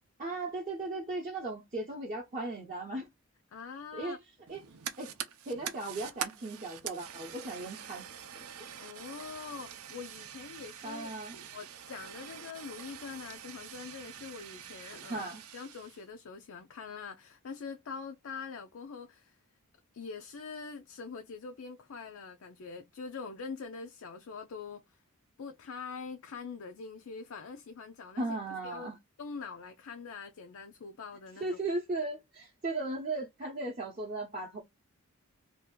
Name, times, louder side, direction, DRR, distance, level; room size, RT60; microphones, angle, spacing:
voice 1, 0.2-3.1 3.9-4.2 4.5-4.6 5.0-5.1 5.5-8.0 10.8-11.3 15.1-15.4 28.2-29.0 31.4-34.6, right 2 dB, 35° right, 0.7 m, -36 dB
voice 2, 3.5-4.2 8.8-11.1 11.5-15.3 15.5-19.4 19.9-24.8 25.4-28.3 28.6-28.9 29.2-31.6, left 5 dB, 65° left, 0.4 m, -44 dB
Fire, 4.5-16.0, right 9 dB, 75° right, 0.6 m, -45 dB
2.7 x 2.4 x 3.6 m
head